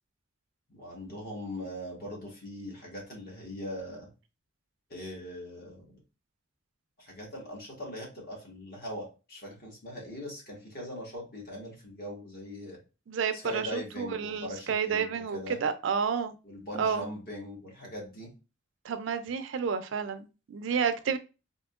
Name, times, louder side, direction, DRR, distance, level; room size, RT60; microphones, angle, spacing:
voice 1, 0.7-4.1 4.9-6.0 7.0-12.8 13.3-15.6 16.4-18.3, left 1 dB, 50° left, 1.3 m, -41 dB
voice 2, 13.1-16.3 16.8-17.0 18.8-21.2, right 6 dB, 70° right, 0.4 m, -30 dB
3.6 x 2.7 x 2.3 m
head